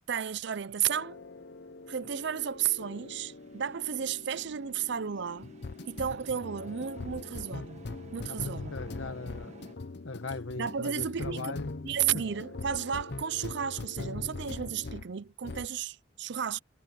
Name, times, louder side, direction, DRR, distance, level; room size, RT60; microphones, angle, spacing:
voice 1, 0.1-1.2 1.9-5.5 5.9-7.8 8.1-8.7 10.6-11.6 11.8-16.6, right 8 dB, 60° right, 0.5 m, -33 dB
sound 1, 0.8-15.1 15.4-15.7, left 3 dB, 55° left, 0.7 m, -42 dB
sound 2, 2.0-9.8, right 1 dB, 35° right, 1.6 m, -54 dB
voice 2, 8.2-9.6 10.0-11.7 12.1-12.2, left 3 dB, 75° left, 1.3 m, -39 dB
head